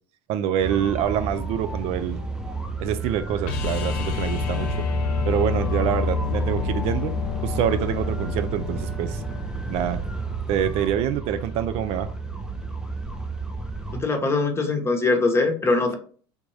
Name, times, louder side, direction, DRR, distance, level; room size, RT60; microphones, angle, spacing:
voice 1, 0.3-2.2 2.8-4.9 5.3-9.2 9.7-10.1 10.5-12.1, right 10 dB, 55° right, 0.4 m, -26 dB
sound 1, 0.6-14.0, right 4 dB, 5° right, 0.6 m, -32 dB
sound 2, 3.5-9.4 11.9-12.0, left 6 dB, 75° left, 0.8 m, -28 dB
voice 2, 13.9-15.9, left 3 dB, 20° left, 0.9 m, -22 dB
3.6 x 2.6 x 3.2 m
supercardioid pair, 95°, 12 cm